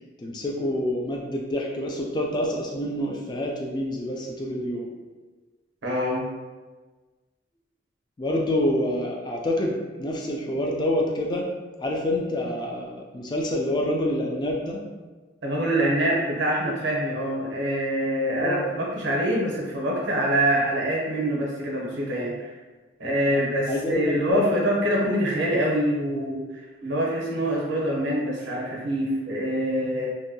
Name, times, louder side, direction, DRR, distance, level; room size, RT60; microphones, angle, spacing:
voice 1, 0.2-4.9 8.2-11.5 11.8-14.8 18.3-18.7 23.3-23.4 23.7-24.6, left 1 dB, 20° left, -1 dB, 0.3 m, -27 dB
voice 2, 5.8-6.3 15.4-22.5 23.0-30.1, right 1 dB, 65° right, -3 dB, 0.7 m, -25 dB
2.6 x 2.2 x 2.6 m, 1.3 s
head